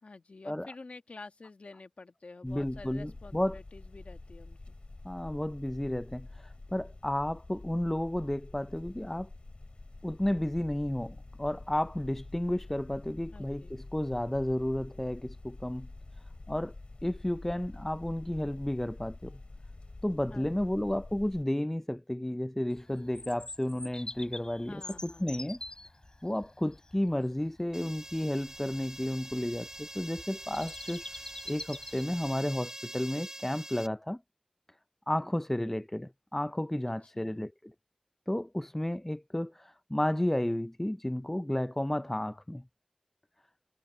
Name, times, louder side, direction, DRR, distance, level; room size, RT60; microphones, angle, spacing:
voice 1, 0.0-4.7 13.3-13.7 20.3-20.7 24.7-25.3 36.8-37.4, left 3 dB, 80° left, 1.5 m, -49 dB
sound 1, 2.4-21.4, left 2 dB, 55° left, 3.4 m, -47 dB
voice 2, 2.4-3.6 5.0-6.3 6.7-9.3 10.0-15.9 16.5-16.7 17.0-19.4 20.0-25.6 26.2-31.0 31.5-34.2 35.1-37.7 38.3-42.6, left 1 dB, 15° left, 0.4 m, -32 dB
Bird vocalization bird call bird song, 22.7-32.3, left 2 dB, 40° left, 6.5 m, -47 dB
sound 2, 27.7-33.9, right 1 dB, 25° right, 2.1 m, -45 dB
wide cardioid pair, 50°, 2 cm